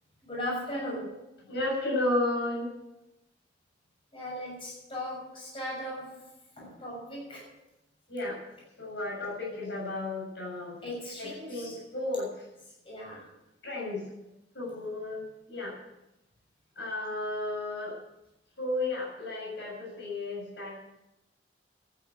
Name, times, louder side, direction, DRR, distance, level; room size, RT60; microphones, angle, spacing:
voice 1, 0.2-1.1 4.1-6.3 6.6-7.5 10.8-11.8 12.8-13.3, left 1 dB, 30° left, -3 dB, 7.0 m, -37 dB
voice 2, 1.5-2.7 8.1-8.4 8.8-10.8 11.2-12.3 13.6-14.0 14.5-15.2 15.5-15.8 16.8-18.0 18.6-20.7, left 2 dB, 70° left, -3 dB, 7.0 m, -33 dB
12.5 x 10.5 x 8.5 m, 0.91 s
head